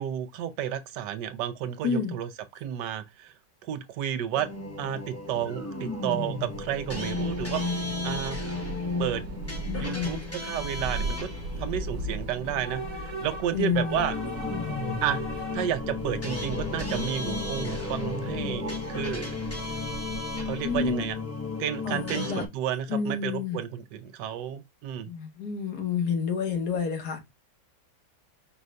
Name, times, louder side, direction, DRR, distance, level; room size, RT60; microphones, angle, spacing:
voice 1, 0.0-3.3 3.6-4.5 4.8-7.6 8.0-8.4 9.0-9.2 9.8-11.3 11.6-14.1 15.0-15.2 15.5-19.3 20.5-21.2 21.6-25.1, right 10 dB, 85° right, 1.3 m, -31 dB
voice 2, 1.8-2.1 9.7-10.2 13.5-14.0 20.6-21.0 21.8-22.4 22.9-23.6 25.1-27.2, left 6 dB, 70° left, 1.6 m, -29 dB
sound 1, 4.3-22.5, left 3 dB, 25° left, 0.3 m, -34 dB
Train / Subway metro underground, 6.4-21.2, right 1 dB, 55° right, 1.3 m, -38 dB
5.3 x 2.6 x 3.2 m
omnidirectional pair, 1.8 m